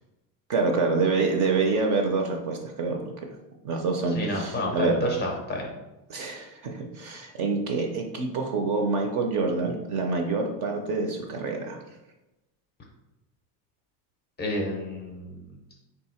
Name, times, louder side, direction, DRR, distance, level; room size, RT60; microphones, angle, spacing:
voice 1, 0.5-3.1 3.6-5.0 6.1-11.8, right 4 dB, 40° right, 3 dB, 0.4 m, -26 dB
voice 2, 4.1-5.7 14.4-15.4, left 1 dB, 20° left, 0 dB, 0.4 m, -29 dB
3.6 x 2.7 x 4.2 m, 0.98 s
cardioid pair, 165°, 49 cm